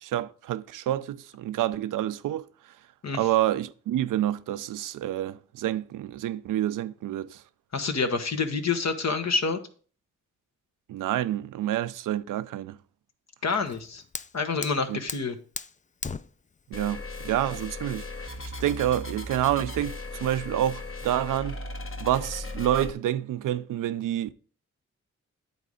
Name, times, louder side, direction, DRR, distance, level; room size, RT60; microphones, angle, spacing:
voice 1, 0.0-2.5 3.1-7.4 10.9-12.8 14.9-15.0 16.7-18.3 18.6-21.6 22.0-24.3, right 12 dB, 80° right, 0.5 m, -28 dB
voice 2, 7.7-9.6 13.4-14.0 14.3-15.4, left 4 dB, 55° left, 1.2 m, -27 dB
Fire, 13.5-19.5, left 5 dB, 25° left, 0.4 m, -41 dB
sound 1, 16.7-22.9, left 2 dB, 40° left, 1.3 m, -37 dB
9.4 x 4.1 x 4.9 m
supercardioid pair, 40°, 32 cm